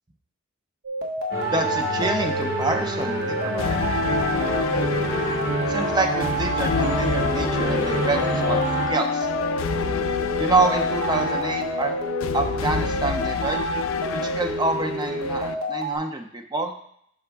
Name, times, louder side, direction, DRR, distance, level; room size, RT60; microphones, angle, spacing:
sound 1, 0.8-16.0, right 1 dB, 45° right, 1.0 m, -29 dB
sound 2, 1.3-8.9, right 2 dB, 85° right, 2.5 m, -28 dB
voice 1, 1.5-3.8 5.7-8.6 8.9-9.3 10.4-11.9 12.3-13.6 14.2-16.7, right 3 dB, 20° right, 4 dB, 0.5 m, -27 dB
sound 3, 3.6-15.5, left 6 dB, 65° left, 0.4 m, -28 dB
5.8 x 5.0 x 3.4 m, 0.68 s
head